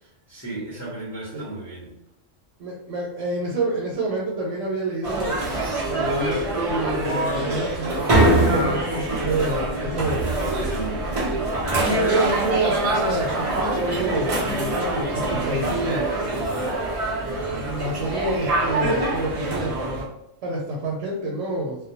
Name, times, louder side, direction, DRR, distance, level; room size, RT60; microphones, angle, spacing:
voice 1, 0.0-1.9 10.7-11.0, right 3 dB, 15° left, -8 dB, 0.6 m, -35 dB
voice 2, 2.6-5.4 5.8-10.3 11.9-16.6 17.5-19.7 20.4-21.9, right 2 dB, 85° right, -3 dB, 0.9 m, -28 dB
sound 1, 5.0-20.0, right 2 dB, 60° right, 0.3 m, -24 dB
2.2 x 2.1 x 2.8 m, 0.79 s
omnidirectional pair, 1.3 m